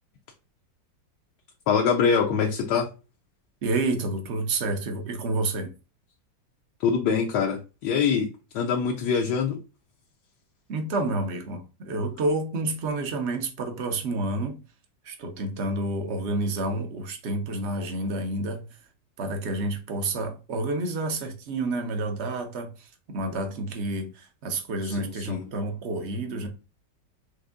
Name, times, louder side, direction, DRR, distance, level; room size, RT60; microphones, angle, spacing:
voice 1, 1.7-2.9 6.8-8.3 8.5-9.6 24.9-25.4, left 6 dB, 70° left, 1.1 m, -24 dB
voice 2, 3.6-5.7 10.7-14.6 15.0-18.8 19.2-26.5, right 2 dB, 55° right, 0.7 m, -29 dB
6.2 x 2.6 x 2.4 m
omnidirectional pair, 2.0 m